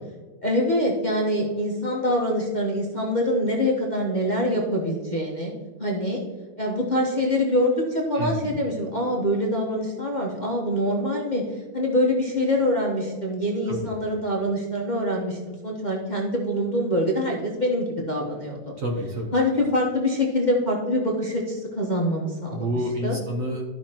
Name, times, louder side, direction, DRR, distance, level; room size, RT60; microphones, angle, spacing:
voice 1, 0.4-5.5 5.8-6.2 6.6-11.4 11.7-18.6 19.3-22.7 23.0-23.2, left 1 dB, 30° left, -3 dB, 0.9 m, -24 dB
voice 2, 8.1-8.6 13.7-13.9 18.8-19.3 22.5-23.6, equal, 50° right, 1 dB, 1.1 m, -28 dB
13.0 x 5.7 x 2.9 m, 1.3 s
omnidirectional pair, 2.1 m